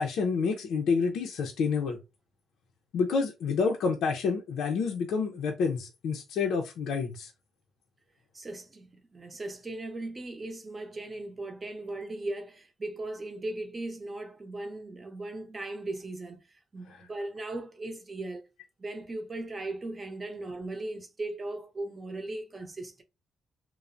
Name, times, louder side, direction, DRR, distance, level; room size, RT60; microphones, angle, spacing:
voice 1, 0.0-2.0 2.9-7.3, left 5 dB, 75° left, 0.5 m, -28 dB
voice 2, 8.3-18.5 18.8-23.0, right 2 dB, 25° right, 0.7 m, -38 dB
3.1 x 2.0 x 2.4 m
cardioid pair, 90°, 0 cm